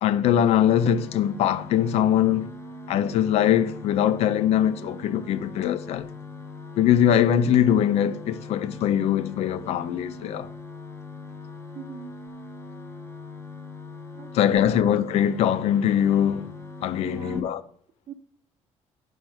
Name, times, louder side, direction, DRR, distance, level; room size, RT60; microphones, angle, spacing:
voice 1, 0.0-2.5 2.9-6.1 6.8-10.5 14.3-16.5 16.8-17.6, left 10 dB, 70° left, 0.5 m, -22 dB
sound 1, 0.6-17.4, left 3 dB, 20° left, 0.8 m, -41 dB
voice 2, 11.7-12.1 14.1-14.7 17.0-17.5 18.1-18.2, right 8 dB, 45° right, 0.5 m, -40 dB
5.2 x 4.6 x 4.8 m
cardioid pair, 115°, 11 cm